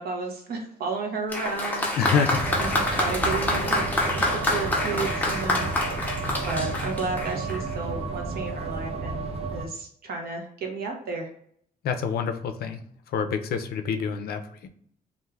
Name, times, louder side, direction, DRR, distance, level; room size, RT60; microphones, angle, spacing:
voice 1, 0.0-1.9 2.6-3.8 4.1-6.1 6.4-11.3, right 4 dB, 70° right, 2 dB, 0.8 m, -33 dB
Applause, 1.3-7.8 8.7-8.8, left 1 dB, 10° left, 0.6 m, -27 dB
voice 2, 2.0-2.5 11.8-12.8 13.1-14.7, left 6 dB, 70° left, 7 dB, 0.4 m, -27 dB
sound 1, 2.3-9.7, right 3 dB, 40° right, 0.4 m, -32 dB
2.5 x 2.3 x 3.2 m, 0.64 s
wide cardioid pair, 160°, 16 cm